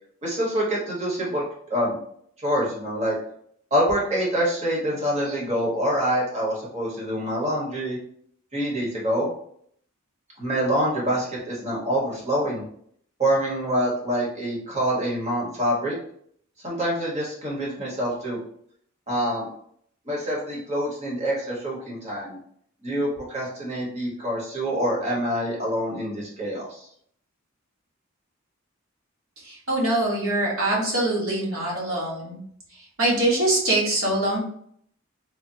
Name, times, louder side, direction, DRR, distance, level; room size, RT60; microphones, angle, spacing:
voice 1, 0.2-2.0 2.4-3.2 3.7-8.0 8.5-9.3 10.4-12.6 13.2-16.0 16.6-18.4 19.1-19.5 20.0-22.4 22.8-26.9, equal, 35° right, -5 dB, 1.2 m, -26 dB
voice 2, 29.4-32.4 33.0-34.4, right 1 dB, 80° right, -5 dB, 1.4 m, -23 dB
3.4 x 2.2 x 2.7 m, 0.65 s
head